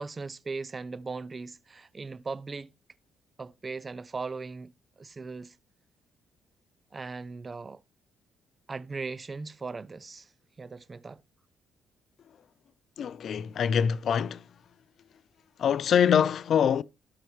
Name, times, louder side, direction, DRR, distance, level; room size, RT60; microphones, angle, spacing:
voice 1, 0.0-2.7 3.4-4.7 5.0-5.5 6.9-7.8 8.7-10.3 10.6-11.2, right 4 dB, 30° right, 0.4 m, -38 dB
voice 2, 13.0-14.5 15.6-16.8, left 8 dB, 60° left, 0.4 m, -24 dB
12.5 x 5.8 x 3.1 m
cardioid pair, 90°, 0 cm